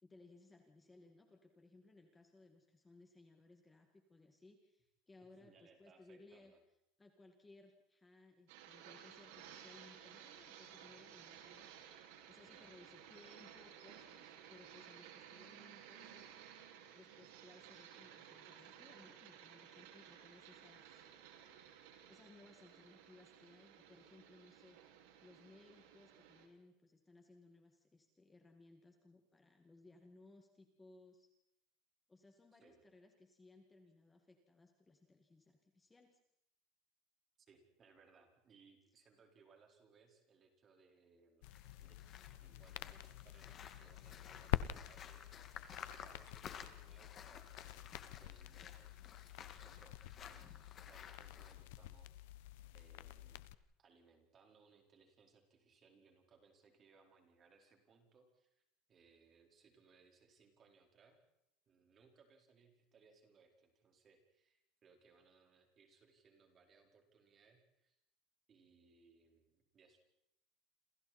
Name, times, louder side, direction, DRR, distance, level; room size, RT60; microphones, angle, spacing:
voice 1, 0.0-6.5 7.0-11.7 12.3-16.3 16.9-21.0 22.1-24.8 25.2-31.3 32.1-36.2, left 2 dB, 10° left, 4 dB, 2.1 m, -63 dB
voice 2, 5.4-6.6 12.4-12.9 32.6-32.8 37.5-41.5 41.8-42.0 42.4-48.8 49.4-52.3 52.7-53.4 53.8-58.6 58.9-61.2 61.7-68.0 68.5-70.0, right 5 dB, 25° right, 3 dB, 4.5 m, -68 dB
sound 1, 8.5-26.5, right 9 dB, 85° right, 4.7 m, -57 dB
sound 2, 41.4-53.5, left 14 dB, 85° left, 1.0 m, -47 dB
sound 3, 41.4-51.5, left 8 dB, 30° left, 2.0 m, -55 dB
28.5 x 27.5 x 4.4 m, 0.81 s
cardioid pair, 160°, 0 cm